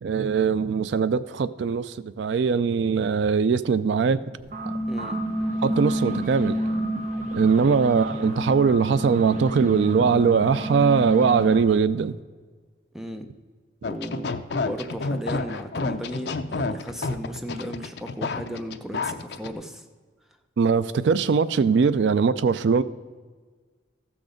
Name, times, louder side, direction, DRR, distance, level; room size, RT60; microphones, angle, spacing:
voice 1, 0.0-4.2 4.6-4.7 5.6-6.6 7.3-12.2 20.6-22.8, right 5 dB, 70° right, 16 dB, 0.4 m, -21 dB
sound 1, 4.4-11.6, right 1 dB, 40° right, 1.3 m, -29 dB
voice 2, 4.9-5.2 7.6-7.8 12.9-13.3 13.9-14.3 14.6-19.9, equal, ahead, 6 dB, 0.6 m, -35 dB
sound 2, 13.8-19.5, left 3 dB, 60° left, 0.5 m, -29 dB
14.0 x 6.1 x 5.1 m, 1.5 s
head